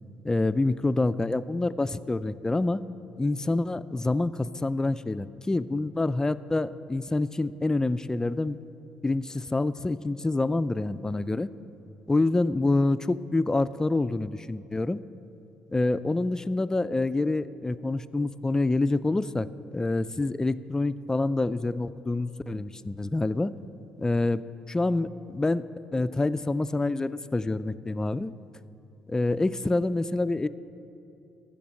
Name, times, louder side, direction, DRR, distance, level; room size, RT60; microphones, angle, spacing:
voice 1, 0.2-2.8 3.2-8.6 9.0-11.5 12.1-15.0 15.7-23.5 24.0-24.4 24.7-25.6 25.9-28.3 29.1-30.5, left 2 dB, 15° left, 15 dB, 0.3 m, -27 dB
14.0 x 5.2 x 6.4 m, 2.8 s
supercardioid pair, 60°, 4 cm